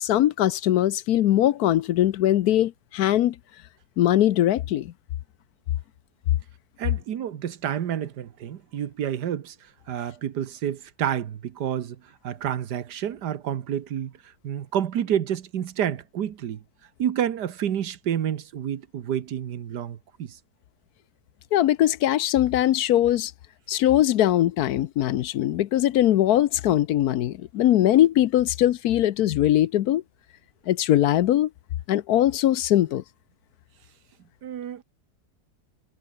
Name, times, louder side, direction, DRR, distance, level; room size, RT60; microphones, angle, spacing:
voice 1, 0.0-3.4 4.0-4.9 21.5-23.3 23.7-30.0 30.7-31.5 31.9-33.0, left 13 dB, 70° left, 1.1 m, -21 dB
voice 2, 6.8-9.6 9.9-12.0 12.2-14.1 14.4-16.6 17.0-20.4 34.4-34.8, right 9 dB, 80° right, 1.7 m, -29 dB
omnidirectional pair, 1.8 m